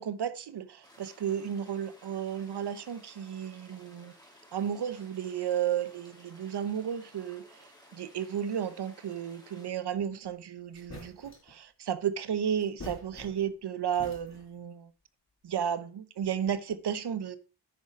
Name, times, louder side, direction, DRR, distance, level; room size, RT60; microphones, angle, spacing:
voice 1, 0.0-4.1 4.5-14.9 15.4-17.4, right 8 dB, 90° right, 0.9 m, -33 dB
sound 1, 0.8-9.7, equal, 10° left, 3.0 m, -57 dB
sound 2, 10.3-10.4 10.7-11.6 12.6-13.6 13.9-14.6, left 2 dB, 45° left, 4.8 m, -47 dB
9.1 x 6.7 x 4.6 m
wide cardioid pair, 115°, 39 cm